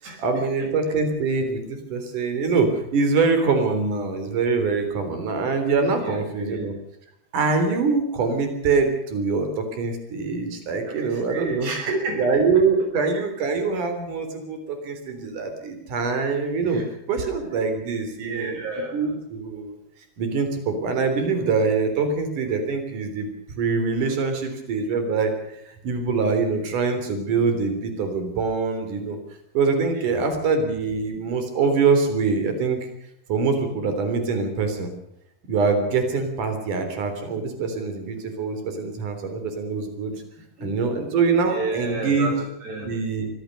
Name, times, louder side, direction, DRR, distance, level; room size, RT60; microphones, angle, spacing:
voice 1, 0.2-6.7 7.3-11.7 12.1-16.8 17.1-18.6 18.9-19.7 20.2-23.3 23.6-29.2 29.5-32.8 33.3-34.9 35.5-40.1 40.6-42.3 42.8-43.3, right 4 dB, 55° right, 7 dB, 4.9 m, -24 dB
voice 2, 6.0-6.7 10.9-12.4 16.6-16.9 17.2-17.3 18.2-19.1 29.9-30.2 40.6-40.7 41.4-42.9, right 2 dB, 85° right, 4 dB, 7.9 m, -31 dB
24.5 x 16.5 x 6.7 m, 0.76 s
omnidirectional pair, 4.6 m